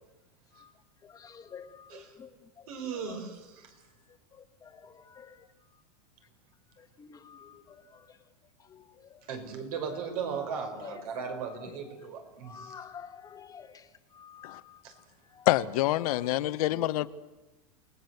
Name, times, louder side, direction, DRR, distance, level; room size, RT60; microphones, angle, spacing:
voice 1, 1.0-2.3 4.6-5.3 7.0-7.8 9.1-9.2 10.8-10.9 12.5-13.7 14.2-14.6, left 7 dB, 20° left, 1.4 m, -48 dB
voice 2, 2.7-3.7 9.3-12.8 14.8-14.9, right 6 dB, 65° right, 6.0 m, -37 dB
voice 3, 15.5-17.1, left 15 dB, 65° left, 1.1 m, -26 dB
28.5 x 19.0 x 8.0 m
supercardioid pair, 150°, 20 cm